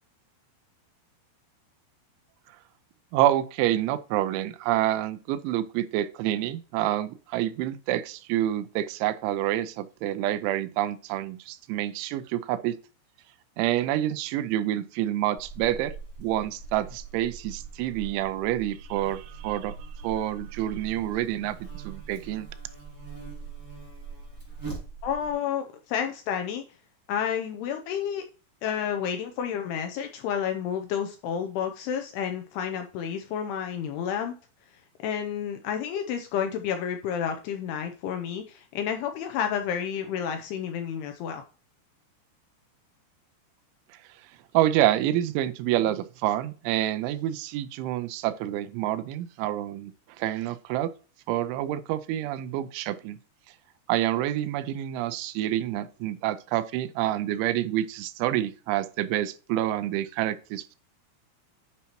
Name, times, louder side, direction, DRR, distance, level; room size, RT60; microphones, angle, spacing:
voice 1, 3.1-12.8 13.6-15.9 16.2-19.8 20.0-22.5 44.5-49.9 50.2-50.9 51.3-53.2 53.9-60.8, right 13 dB, 90° right, 3.1 m, -27 dB
Buzz, 15.4-25.3, right 4 dB, 5° right, 1.9 m, -42 dB
voice 2, 25.0-26.7 27.1-28.2 28.6-34.3 35.0-41.4, left 8 dB, 80° left, 2.4 m, -30 dB
9.6 x 5.7 x 2.9 m
omnidirectional pair, 5.3 m